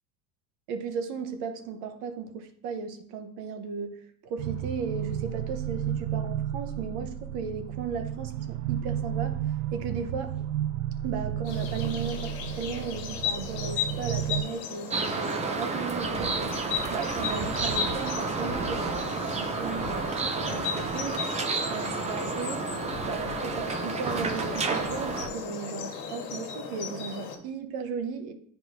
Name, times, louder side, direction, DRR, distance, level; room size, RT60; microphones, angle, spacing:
voice 1, 0.7-3.9 4.2-9.4 9.7-10.4 11.0-16.5 16.9-21.2 21.7-22.7 23.0-28.3, right 5 dB, 60° right, 1.0 m, -36 dB
sound 1, 4.4-14.4, right 11 dB, 90° right, 0.6 m, -32 dB
sound 2, 11.4-27.4, left 7 dB, 55° left, 1.5 m, -36 dB
sound 3, 14.9-25.3, right 4 dB, 15° right, 0.5 m, -31 dB
9.7 x 4.6 x 2.6 m
supercardioid pair, 125°, 44 cm